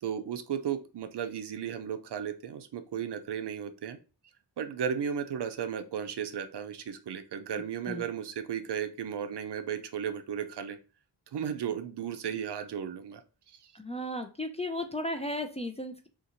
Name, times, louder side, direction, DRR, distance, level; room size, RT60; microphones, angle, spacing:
voice 1, 0.0-4.0 4.6-10.8 11.3-13.2 13.5-13.7, right 8 dB, 70° right, 8 dB, 0.5 m, -35 dB
voice 2, 13.7-16.1, left 1 dB, 15° left, 4 dB, 0.3 m, -35 dB
2.6 x 2.5 x 2.8 m, 0.34 s
cardioid pair, 45°, 43 cm